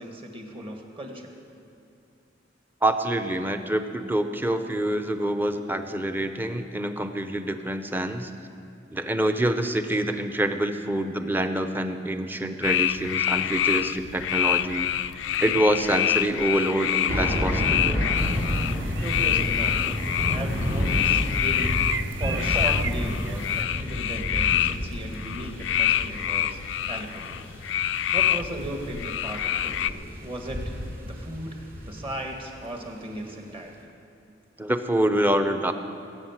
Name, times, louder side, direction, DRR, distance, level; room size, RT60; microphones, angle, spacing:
voice 1, 0.0-1.3 19.0-20.0 20.3-26.6 26.9-27.4 28.1-30.7 31.0-33.9, right 1 dB, 30° right, 2 dB, 1.8 m, -36 dB
voice 2, 2.8-8.3 8.9-14.9 15.4-18.0 22.6-22.7 34.6-35.7, right 1 dB, 10° right, 7 dB, 0.7 m, -26 dB
sound 1, 12.6-29.9, left 11 dB, 75° left, 0.4 m, -26 dB
sound 2, 17.1-32.3 32.8-32.9, equal, 50° right, 2.7 m, -30 dB
sound 3, 18.1-23.6, right 6 dB, 80° right, 0.6 m, -39 dB
20.5 x 9.0 x 7.4 m, 2.7 s
head